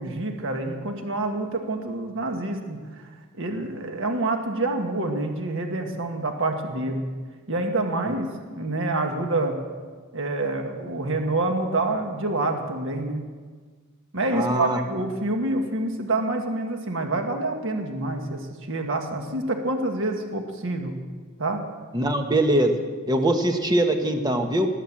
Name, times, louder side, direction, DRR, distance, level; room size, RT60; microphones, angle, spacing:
voice 1, 0.0-2.8 3.4-7.1 7.5-9.6 10.1-13.2 14.1-21.0 21.4-21.6, right 2 dB, 60° right, 4 dB, 1.6 m, -27 dB
voice 2, 14.3-14.8 21.9-22.7 23.1-24.7, right 1 dB, 20° right, 5 dB, 1.3 m, -22 dB
19.0 x 8.3 x 7.3 m, 1.5 s
head